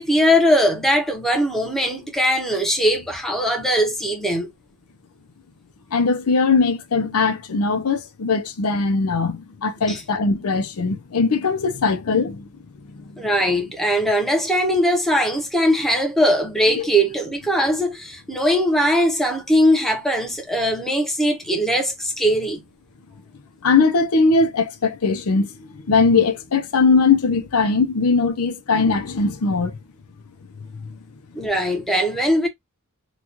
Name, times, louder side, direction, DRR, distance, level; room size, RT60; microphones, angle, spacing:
voice 1, 0.0-4.5 9.9-10.0 13.2-22.6 31.4-32.5, equal, ahead, 0.9 m, -20 dB
voice 2, 5.9-12.5 12.9-13.2 16.7-16.8 23.6-29.8 30.8-31.0, left 4 dB, 90° left, 0.7 m, -20 dB
4.0 x 2.4 x 2.8 m
head